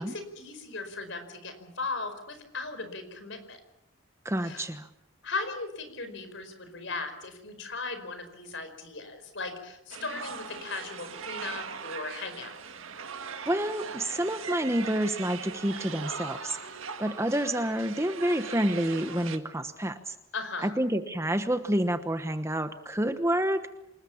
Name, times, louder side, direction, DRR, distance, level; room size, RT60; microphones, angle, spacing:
voice 1, 0.0-3.6 4.4-4.7 5.2-12.6 20.3-20.7, left 3 dB, 60° left, 9 dB, 4.9 m, -37 dB
voice 2, 4.2-4.9 13.5-16.6 17.0-20.2 20.6-23.6, right 1 dB, 15° right, 9 dB, 1.1 m, -28 dB
sound 1, 9.9-19.4, right 6 dB, 75° right, 1.9 m, -40 dB
28.0 x 20.0 x 7.2 m, 0.86 s
head